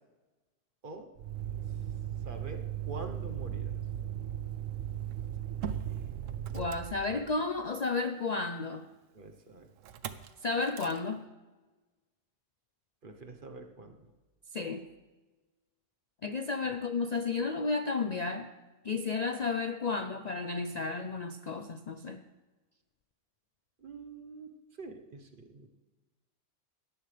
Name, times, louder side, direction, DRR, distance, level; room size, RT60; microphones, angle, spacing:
Motor vehicle (road), 1.2-7.6 9.8-10.3 10.6-11.0, right 10 dB, 85° right, 1.1 m, -37 dB
voice 1, 2.2-3.8 9.1-9.7 13.0-14.1 23.8-24.5 24.8-25.7, right 3 dB, 45° right, 5 dB, 1.2 m, -45 dB
voice 2, 6.5-8.9 10.4-11.2 14.5-14.9 16.2-18.5 18.8-22.2, left 4 dB, 50° left, 7 dB, 0.5 m, -32 dB
17.5 x 13.0 x 3.4 m, 1.2 s
omnidirectional pair, 1.3 m